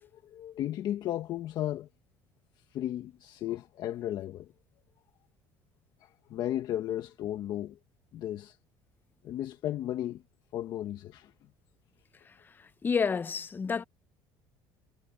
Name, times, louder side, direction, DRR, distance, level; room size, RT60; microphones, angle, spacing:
voice 1, 0.0-1.9 2.7-4.5 6.0-7.8 8.1-8.6 9.2-10.2 10.5-11.3, left 12 dB, 55° left, 1.4 m, -35 dB
voice 2, 12.8-13.8, left 5 dB, 20° left, 0.7 m, -29 dB
cardioid pair, 125°, 9 cm